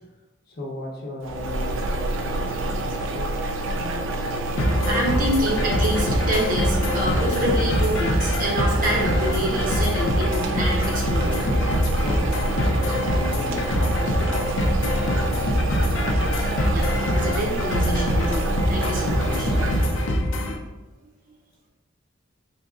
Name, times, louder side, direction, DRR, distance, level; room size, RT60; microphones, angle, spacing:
voice 1, 0.5-3.3 11.9-15.8 18.9-19.2 19.6-20.0, left 1 dB, 45° left, -3 dB, 0.8 m, -37 dB
sound 1, 1.2-20.2, right 2 dB, 80° right, 0.4 m, -28 dB
sound 2, 1.9-9.6, left 1 dB, 10° right, 0.5 m, -41 dB
voice 2, 3.7-11.3 16.3-16.4 16.7-19.7, right 1 dB, 40° right, -1 dB, 0.8 m, -28 dB
Game win screen background music, 4.6-20.6, left 1 dB, 75° left, 0.5 m, -24 dB
4.0 x 3.9 x 2.4 m, 1.0 s
head